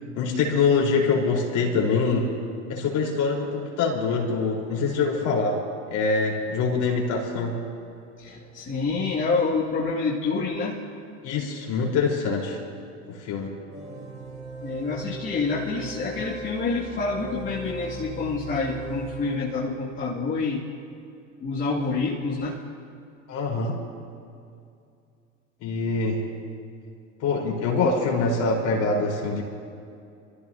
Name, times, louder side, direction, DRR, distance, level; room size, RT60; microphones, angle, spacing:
voice 1, 0.2-2.3 2.7-5.6 5.9-7.7 11.2-12.6 13.1-13.5 23.3-23.8 25.6-26.3 27.2-29.4, left 4 dB, 50° left, -2 dB, 4.4 m, -24 dB
voice 2, 8.2-10.8 14.6-20.6 21.4-22.6, left 4 dB, 30° left, -8 dB, 2.6 m, -27 dB
sound 1, 13.7-19.8, right 2 dB, 55° right, 4.5 m, -38 dB
26.5 x 15.0 x 2.9 m, 2.5 s
hypercardioid pair, 80°, 37 cm